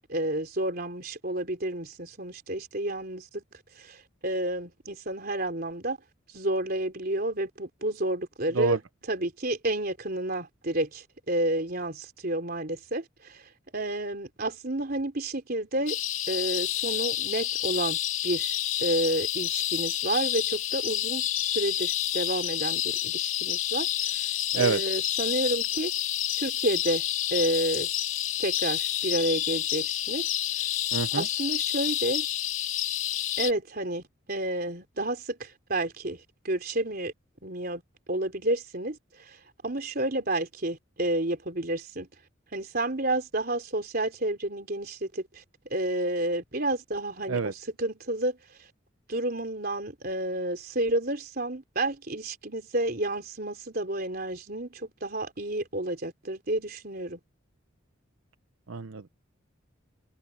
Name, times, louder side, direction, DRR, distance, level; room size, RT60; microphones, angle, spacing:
voice 1, 0.1-3.4 3.8-6.0 6.3-8.8 9.1-16.0 16.3-18.0 18.2-25.9 26.4-27.0 27.3-27.9 28.4-30.3 31.2-32.3 33.4-37.1 37.4-37.8 38.1-39.4 39.6-42.1 42.5-45.4 45.7-48.4 49.1-57.2, right 1 dB, 50° right, 3.7 m, -30 dB
sound 1, 15.9-33.5, left 12 dB, 85° left, 2.1 m, -29 dB
voice 2, 30.9-31.3 47.3-47.5 58.7-59.2, right 5 dB, 90° right, 0.8 m, -27 dB
head